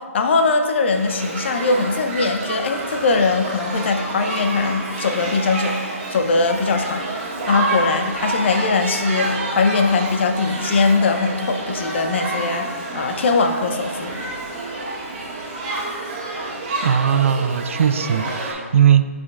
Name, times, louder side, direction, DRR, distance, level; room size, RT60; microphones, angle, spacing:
voice 1, 0.1-5.8 6.1-14.3, left 4 dB, 50° left, 6 dB, 0.7 m, -21 dB
Shout / Human group actions, 0.9-18.5, right 2 dB, 35° right, 1.7 m, -28 dB
voice 2, 16.8-19.1, right 8 dB, 60° right, 12 dB, 0.3 m, -18 dB
13.5 x 5.0 x 2.4 m, 1.5 s
hypercardioid pair, 155°, 8 cm